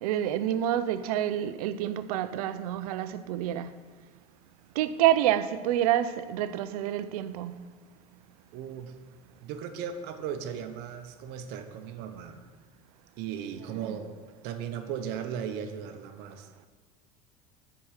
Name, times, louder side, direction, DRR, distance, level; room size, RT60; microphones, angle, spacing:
voice 1, 0.0-3.7 4.8-7.6 13.8-14.0, right 11 dB, 85° right, 0.5 m, -28 dB
voice 2, 8.5-8.9 9.4-12.5 13.2-14.1 14.4-16.5, right 8 dB, 65° right, 0.8 m, -37 dB
7.1 x 4.7 x 6.3 m
supercardioid pair, 100°, 19 cm